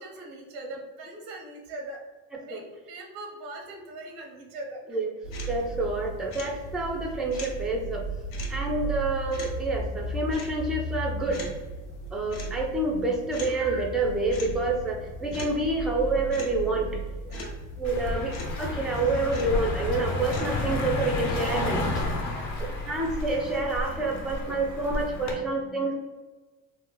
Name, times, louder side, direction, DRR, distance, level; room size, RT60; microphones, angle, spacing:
voice 1, 0.0-2.0 2.4-5.0 17.2-17.6 18.1-18.2 22.3-22.6, right 2 dB, 85° right, 1 dB, 0.9 m, -41 dB
sound 1, 5.2-21.0, right 1 dB, 90° left, 0.8 m, -36 dB
voice 2, 5.5-8.0 8.5-11.4 12.1-16.9 17.8-22.1 22.6-25.9, right 2 dB, ahead, 1 dB, 0.4 m, -28 dB
Car passing by, 17.8-25.3, left 2 dB, 40° left, 0.8 m, -31 dB
2.8 x 2.0 x 3.7 m, 1.3 s
supercardioid pair, 90°, 41 cm